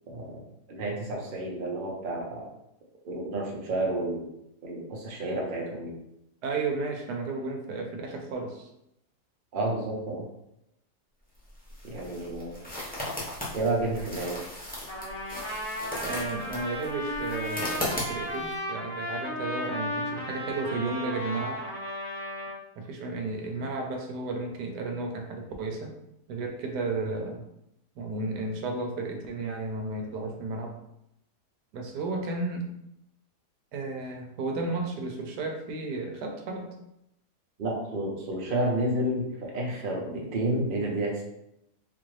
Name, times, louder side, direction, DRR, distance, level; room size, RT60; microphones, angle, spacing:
voice 1, 0.1-0.4 0.7-2.5 3.0-4.3 4.6-5.9 9.5-10.3 11.8-12.6 13.5-14.4 37.6-41.2, right 1 dB, 45° right, -2 dB, 0.8 m, -30 dB
voice 2, 6.4-8.7 16.0-21.6 22.8-25.9 26.3-27.4 28.0-30.7 31.7-32.7 33.7-36.8, right 3 dB, 90° right, 3 dB, 1.2 m, -33 dB
sound 1, 11.3-18.5, left 1 dB, 10° left, 0.5 m, -37 dB
Trumpet, 14.9-22.6, left 1 dB, 65° left, 2.0 m, -35 dB
3.9 x 2.5 x 3.1 m, 0.83 s
omnidirectional pair, 1.7 m